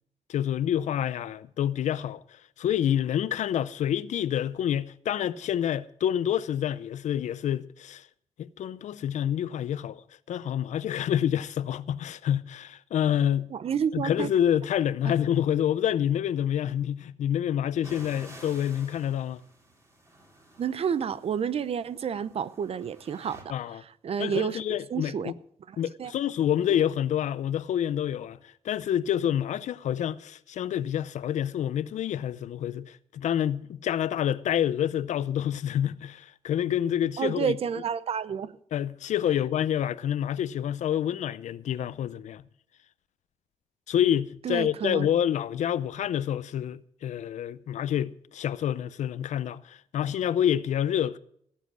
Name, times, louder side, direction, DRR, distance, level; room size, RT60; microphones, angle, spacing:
voice 1, 0.3-2.2 2.6-8.1 8.4-10.0 10.3-13.5 13.9-19.4 23.5-23.8 24.2-25.4 25.8-28.4 28.6-37.5 38.7-42.4 43.9-51.2, left 10 dB, 80° left, 0.5 m, -28 dB
voice 2, 13.5-14.3 20.6-25.3 25.7-26.1 37.2-38.6 44.4-45.1, right 7 dB, 55° right, 0.6 m, -30 dB
sound 1, 17.8-23.4, right 1 dB, 25° right, 3.2 m, -51 dB
17.0 x 7.5 x 6.2 m
cardioid pair, 105°, 12 cm